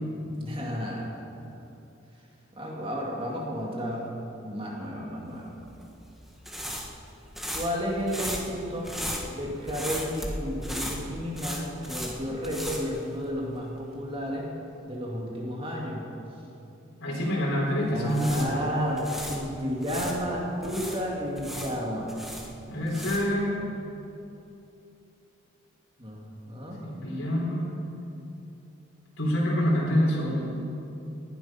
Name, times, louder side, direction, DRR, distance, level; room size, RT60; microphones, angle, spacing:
voice 1, 0.2-1.1 2.6-4.1 4.4-5.5 7.5-8.9 9.3-14.5 14.9-16.0 17.9-22.1 26.0-26.8, equal, 25° right, -2 dB, 2.2 m, -32 dB
sound 1, 5.6-13.7 13.9-14.1 17.9-20.2 20.6-23.4, equal, ahead, 1.5 m, -37 dB
voice 2, 17.0-18.6 22.7-23.5 26.8-27.7 29.2-30.5, equal, 85° left, -5 dB, 3.9 m, -26 dB
19.0 x 11.5 x 5.7 m, 2.8 s
head